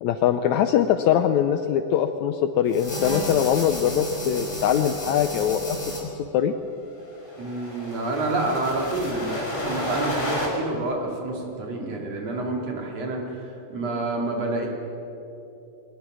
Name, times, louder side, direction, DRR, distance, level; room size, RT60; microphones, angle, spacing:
voice 1, 0.0-5.8 6.3-6.5, left 9 dB, 75° left, 9 dB, 1.7 m, -22 dB
sound 1, 2.7-6.0 7.1-10.5, equal, 20° left, 6.0 m, -32 dB
voice 2, 7.4-14.7, right 2 dB, 50° right, 0 dB, 3.6 m, -28 dB
22.5 x 19.0 x 6.2 m, 3.0 s
omnidirectional pair, 3.8 m